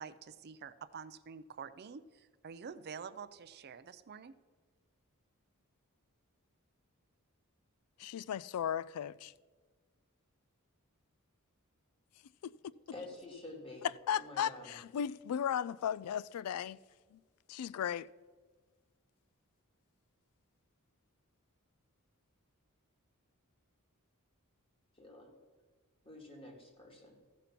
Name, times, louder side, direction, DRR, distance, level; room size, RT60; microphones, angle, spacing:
voice 1, 0.0-4.4, right 6 dB, 45° right, 0.4 m, -48 dB
voice 2, 8.0-9.3 12.4-12.6 14.1-16.8 17.1-17.2 17.5-18.1, left 9 dB, 90° left, 0.3 m, -36 dB
voice 3, 12.9-13.9 14.1-14.8 24.9-25.3 26.0-27.2, left 2 dB, 25° left, 2.1 m, -49 dB
14.5 x 5.3 x 5.9 m
head